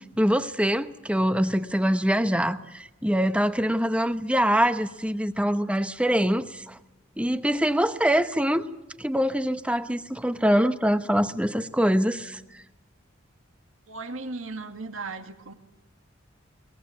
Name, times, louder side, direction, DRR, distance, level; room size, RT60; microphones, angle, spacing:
voice 1, 0.2-6.8 7.2-8.7 9.0-12.4, equal, 5° right, 0.8 m, -24 dB
voice 2, 13.9-15.5, right 3 dB, 80° right, 2.0 m, -36 dB
22.0 x 19.5 x 8.6 m
head